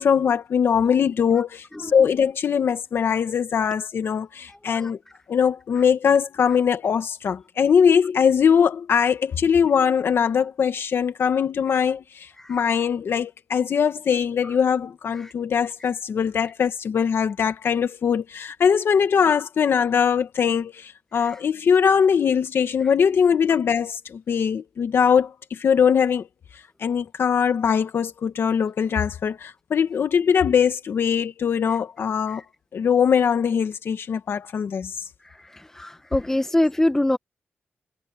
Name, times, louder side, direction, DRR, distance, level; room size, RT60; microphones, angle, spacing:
voice 1, 0.0-5.0 5.3-26.3 26.8-32.4 32.7-35.0, left 7 dB, 75° left, 1.5 m, -21 dB
voice 2, 35.7-37.2, left 1 dB, 10° left, 1.1 m, -22 dB
wide cardioid pair, 100°, 4 cm